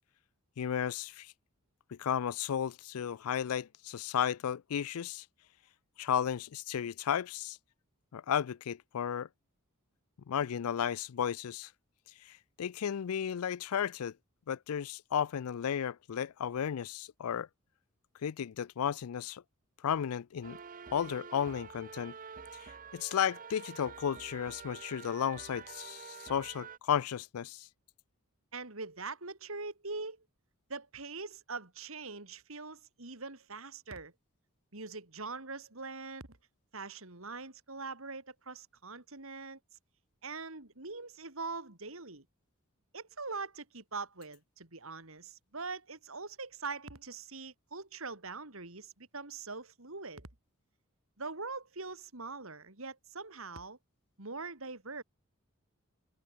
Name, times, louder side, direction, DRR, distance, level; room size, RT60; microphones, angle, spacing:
voice 1, 0.6-1.3 1.9-5.2 6.0-7.6 8.1-9.3 10.3-11.7 12.3-14.1 14.5-17.5 18.2-19.4 19.8-20.6 20.9-22.1 22.9-27.7, left 8 dB, 80° left, 0.4 m, -34 dB
sound 1, 20.4-26.8, right 6 dB, 40° right, 0.9 m, -48 dB
voice 2, 28.5-30.2 30.7-34.1 34.7-36.2 36.7-39.6 40.2-42.2 42.9-50.3 51.2-53.8 54.2-55.0, right 4 dB, 65° right, 3.2 m, -43 dB
head